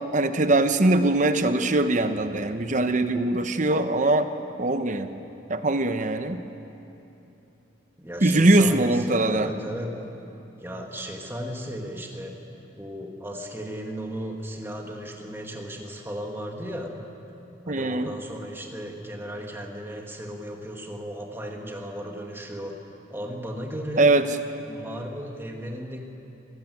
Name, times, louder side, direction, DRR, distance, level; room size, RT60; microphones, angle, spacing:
voice 1, 0.0-4.3 4.6-5.1 5.5-6.4 8.2-9.5 17.7-18.1 24.0-24.3, right 2 dB, 40° right, 9 dB, 1.0 m, -21 dB
voice 2, 8.0-10.0 10.6-12.3 12.7-17.0 17.7-22.8 23.1-24.1 24.7-26.0, equal, 10° right, 1 dB, 2.0 m, -35 dB
24.0 x 15.0 x 9.3 m, 3.0 s
head